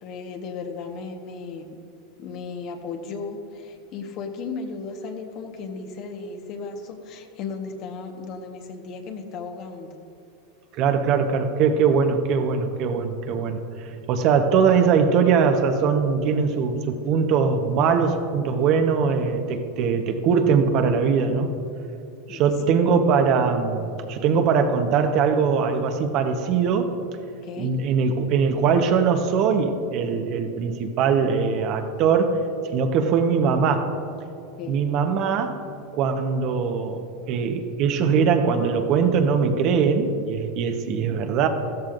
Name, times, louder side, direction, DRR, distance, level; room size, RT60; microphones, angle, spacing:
voice 1, 0.0-1.8 2.2-10.0 22.3-22.5 27.4-27.8 34.6-34.9, left 4 dB, 50° left, 4 dB, 1.3 m, -35 dB
voice 2, 10.7-21.5 22.3-27.0 27.6-32.4 32.7-33.9 34.7-35.6 35.9-41.5, right 6 dB, 50° right, 6 dB, 1.0 m, -21 dB
14.0 x 13.5 x 2.6 m, 2.7 s
hypercardioid pair, 115°, 0 cm